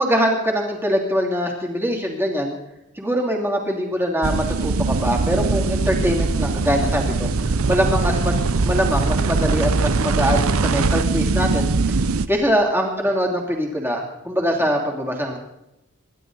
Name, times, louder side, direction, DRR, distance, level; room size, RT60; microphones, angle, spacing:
voice 1, 0.0-2.6 2.9-8.3 8.6-12.0 12.3-15.4, equal, 10° right, 0 dB, 2.9 m, -23 dB
sound 1, 4.2-12.3, right 3 dB, 85° right, 0.8 m, -21 dB
27.0 x 12.0 x 3.9 m, 0.87 s
head